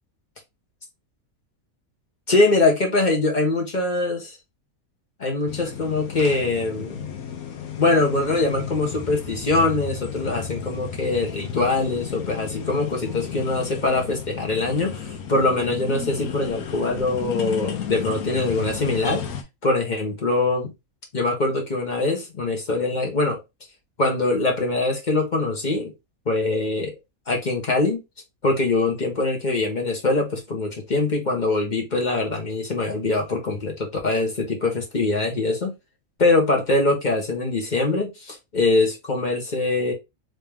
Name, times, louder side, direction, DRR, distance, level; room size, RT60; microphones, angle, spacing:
voice 1, 2.3-4.4 5.2-7.1 7.8-19.2 19.6-20.7 21.1-23.4 24.0-25.9 26.3-26.9 27.3-28.0 28.4-35.7 36.2-39.9, left 2 dB, 35° left, 1.2 m, -23 dB
sound 1, 5.5-19.4, left 7 dB, 85° left, 1.2 m, -33 dB
3.3 x 2.9 x 3.5 m
omnidirectional pair, 1.5 m